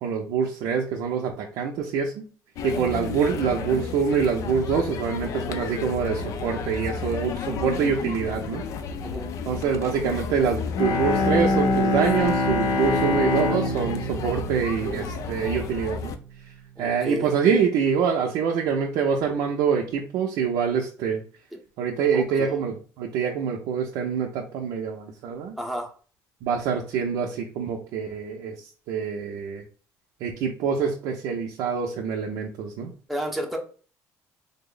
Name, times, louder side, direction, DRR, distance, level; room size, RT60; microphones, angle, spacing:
voice 1, 0.0-2.2 2.6-8.6 9.5-16.1 16.8-21.2 21.8-25.6 26.4-29.6 30.2-32.9, right 6 dB, 80° right, 0 dB, 0.5 m, -25 dB
sound 1, 2.6-16.2, left 5 dB, 60° left, 0.4 m, -33 dB
Bowed string instrument, 10.7-15.6, left 2 dB, 75° left, 0.8 m, -25 dB
voice 2, 16.8-17.3 21.5-21.6 22.1-22.6 25.6-25.9 33.1-33.6, equal, ahead, 1 dB, 0.7 m, -32 dB
3.5 x 2.0 x 3.8 m, 0.40 s
cardioid pair, 125°, 6 cm